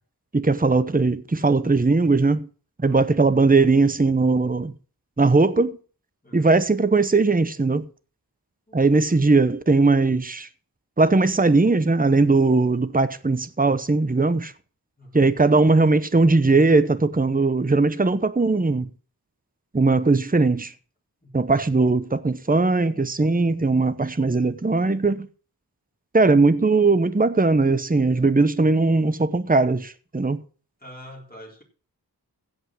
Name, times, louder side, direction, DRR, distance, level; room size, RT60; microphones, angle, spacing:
voice 1, 0.3-2.5 2.8-4.7 5.2-5.8 6.3-7.9 8.7-10.5 11.0-14.5 15.1-18.9 19.7-20.7 21.3-25.3 26.1-30.4, right 3 dB, 20° right, 0.9 m, -19 dB
voice 2, 6.2-6.5 8.7-9.2 15.0-15.3 21.2-21.5 30.8-31.6, equal, 20° left, 4.0 m, -46 dB
16.0 x 5.4 x 6.2 m
wide cardioid pair, 45°, 40 cm